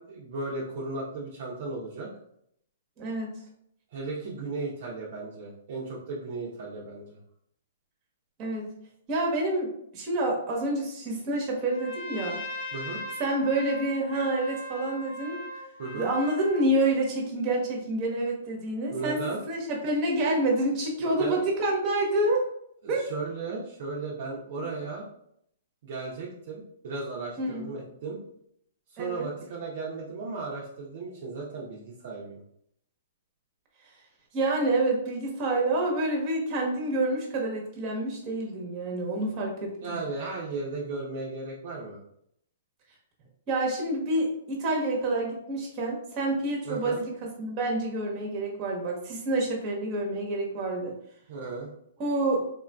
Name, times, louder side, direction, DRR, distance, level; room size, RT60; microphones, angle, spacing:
voice 1, 0.0-2.1 3.9-7.2 12.7-13.0 15.8-16.1 18.9-19.4 21.0-21.5 22.8-25.1 25.8-28.2 28.9-32.4 39.8-42.0 46.6-47.0 51.3-51.7, right 3 dB, 55° right, -4 dB, 0.7 m, -35 dB
voice 2, 3.0-3.4 8.4-8.7 9.1-12.4 13.2-15.4 15.9-19.2 19.5-22.4 22.9-23.1 24.6-24.7 27.4-27.7 29.0-29.3 34.3-40.0 43.5-50.9 52.0-52.4, right 2 dB, 30° right, -1 dB, 1.0 m, -28 dB
Trumpet, 11.6-16.7, left 1 dB, 55° left, 0.8 m, -39 dB
3.6 x 2.4 x 2.3 m, 0.71 s
hypercardioid pair, 140°, 0 cm